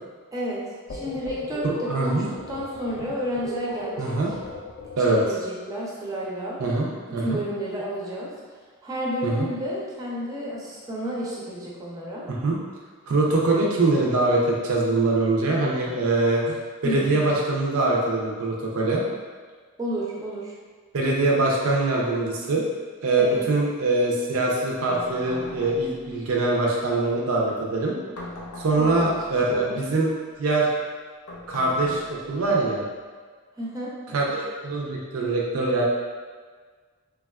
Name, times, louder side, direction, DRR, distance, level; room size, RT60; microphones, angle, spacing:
sound 1, 0.9-5.3, left 2 dB, 45° left, 0.3 m, -37 dB
voice 1, 0.9-4.2 5.1-6.6 7.1-8.3 8.8-12.3 16.8-17.3 19.8-20.5 23.2-23.4 28.7-29.1 29.5-29.8 33.5-34.3, equal, 15° right, -5 dB, 0.5 m, -31 dB
voice 2, 1.6-2.3 4.0-4.3 5.0-5.2 6.6-7.4 9.2-9.5 12.3-12.6 13.1-16.6 16.8-19.0 20.9-22.6 23.0-28.0 28.6-30.1 30.4-30.7 31.5-32.8 34.1-35.8, right 2 dB, 70° right, -3 dB, 0.5 m, -23 dB
sound 2, 24.9-26.1 28.2-29.4 31.3-32.4, left 1 dB, 80° left, 0.6 m, -40 dB
3.4 x 2.3 x 2.2 m, 1.5 s
head